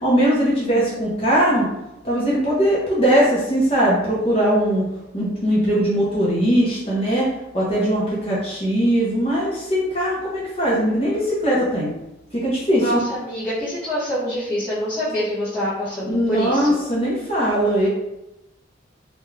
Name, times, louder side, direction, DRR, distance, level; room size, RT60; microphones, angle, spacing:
voice 1, 0.0-1.7 2.0-4.8 5.1-7.3 7.5-11.9 12.3-13.0 16.0-17.9, equal, 30° left, -6 dB, 0.7 m, -20 dB
voice 2, 12.7-16.7, equal, 10° left, -16 dB, 1.0 m, -25 dB
2.5 x 2.3 x 3.1 m, 0.92 s
head